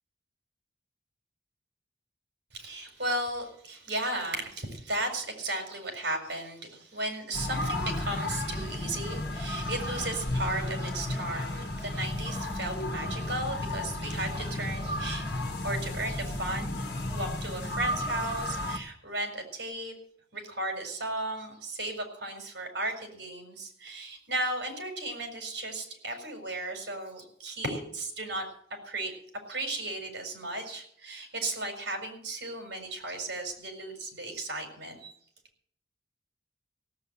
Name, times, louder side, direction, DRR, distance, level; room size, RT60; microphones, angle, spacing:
voice 1, 2.5-15.2 15.6-19.9 20.3-28.4 28.8-29.1 29.5-35.1, right 2 dB, 65° right, 4 dB, 4.8 m, -35 dB
sound 1, 7.3-18.8, left 1 dB, 55° left, 1.8 m, -33 dB
17.0 x 8.0 x 8.7 m, 0.64 s
head